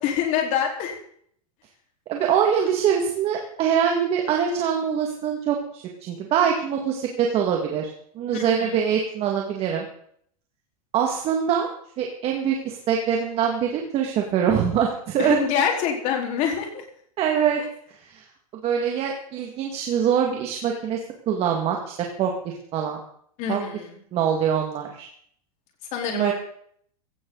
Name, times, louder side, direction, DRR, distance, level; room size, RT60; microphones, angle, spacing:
voice 1, 0.0-1.0 8.3-8.8 15.2-16.8 23.4-23.9 25.9-26.3, left 8 dB, 40° left, 1 dB, 4.3 m, -26 dB
voice 2, 2.1-7.9 8.2-9.8 10.9-11.7 12.0-15.4 17.2-17.6 18.1-18.2 18.6-21.0 21.3-23.0 23.5-23.6 24.1-25.1 26.1-26.3, right 8 dB, 30° right, 1 dB, 2.1 m, -24 dB
16.5 x 15.5 x 4.0 m, 0.63 s
supercardioid pair, 150°, 19 cm